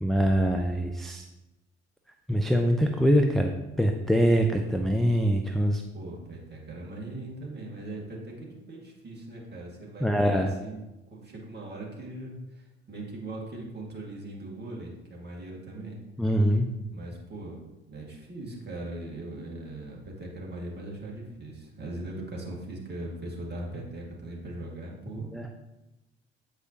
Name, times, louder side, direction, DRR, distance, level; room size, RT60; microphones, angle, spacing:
voice 1, 0.0-1.3 2.3-3.5 3.8-5.8 10.0-10.5 16.2-16.7 25.1-25.5, equal, ahead, 4 dB, 0.5 m, -24 dB
voice 2, 5.9-10.8 11.1-16.0 16.9-25.3, right 2 dB, 30° right, -2 dB, 2.0 m, -40 dB
8.0 x 4.9 x 2.8 m, 1.0 s
figure-of-eight pair, 50°, 33 cm